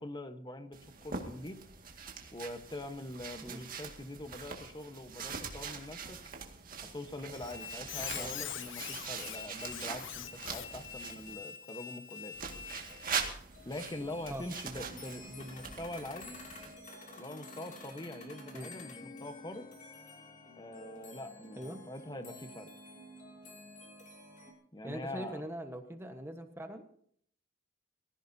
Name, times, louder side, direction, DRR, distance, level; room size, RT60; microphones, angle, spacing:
voice 1, 0.0-1.6 2.3-6.2 6.9-12.3 13.6-16.4 17.2-19.7 20.6-22.7 24.7-25.4, left 1 dB, 20° left, 8 dB, 1.2 m, -43 dB
sound 1, 0.7-11.3 12.3-16.7, right 6 dB, 45° right, 2.1 m, -43 dB
Squeak, 7.3-13.3, left 9 dB, 65° left, 1.1 m, -44 dB
sound 2, 10.2-12.2 12.5-12.6 13.1-13.2 13.5-24.5, left 1 dB, 40° left, 2.7 m, -51 dB
voice 2, 24.8-27.0, right 1 dB, 10° right, 5 dB, 1.3 m, -42 dB
23.0 x 15.0 x 2.8 m, 0.62 s
head